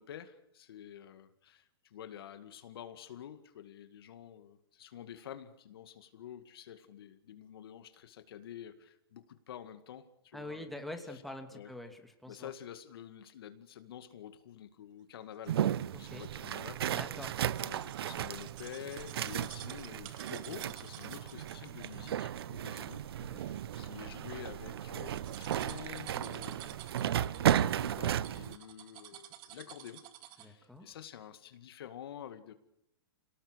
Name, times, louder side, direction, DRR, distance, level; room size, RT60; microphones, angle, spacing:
voice 1, 0.0-10.7 11.1-11.2 11.5-11.7 12.3-15.6 15.9-17.0 17.6-23.0 23.3-26.8 27.3-30.0 30.3-32.5, left 10 dB, 70° left, 2.1 m, -49 dB
voice 2, 10.3-12.5 15.9-16.2 16.9-17.4 23.2-23.4 30.4-30.9, left 1 dB, ahead, 2.6 m, -45 dB
sound 1, 15.4-30.6 31.0-31.1, right 13 dB, 35° right, 1.9 m, -52 dB
sound 2, 15.5-28.6, right 11 dB, 70° right, 0.8 m, -35 dB
28.5 x 18.5 x 6.4 m
hypercardioid pair, 130°, 13 cm